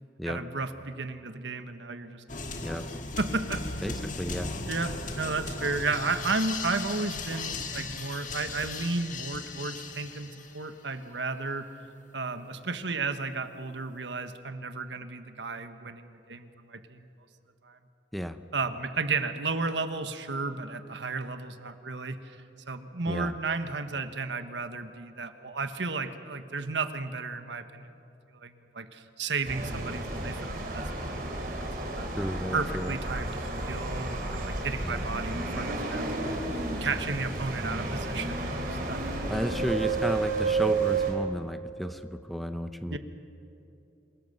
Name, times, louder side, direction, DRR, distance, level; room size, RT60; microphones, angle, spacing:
voice 1, 0.2-2.6 3.2-3.6 4.7-11.7 12.1-17.1 17.6-17.8 18.5-22.4 22.7-27.9 28.3-30.9 32.0-32.1 32.5-36.3 36.8-39.2 42.8-43.0, right 3 dB, 85° right, 9 dB, 1.4 m, -33 dB
sound 1, 2.3-10.8, left 3 dB, 45° left, 1.8 m, -37 dB
voice 2, 3.8-4.5 18.1-18.4 23.1-23.3 32.2-32.9 34.8-35.1 39.3-43.0, equal, ahead, 9 dB, 0.7 m, -33 dB
sound 2, 29.4-41.1, right 3 dB, 55° right, 3.9 m, -31 dB
27.0 x 18.0 x 6.8 m, 2.9 s
head